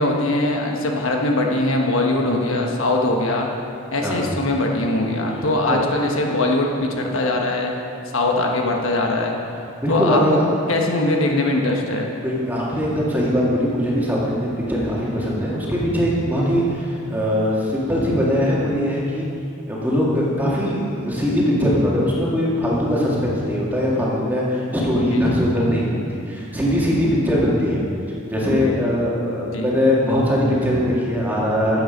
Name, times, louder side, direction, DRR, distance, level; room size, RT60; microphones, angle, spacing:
voice 1, 0.0-3.5 3.9-7.7 8.1-9.4 9.9-10.4 10.7-12.1 25.1-25.2 29.5-29.7, left 2 dB, 70° left, 1 dB, 1.2 m, -21 dB
voice 2, 9.8-10.5 12.1-19.3 19.7-27.8 28.3-31.8, equal, 10° right, -6 dB, 2.0 m, -21 dB
12.5 x 8.3 x 5.2 m, 2.6 s
head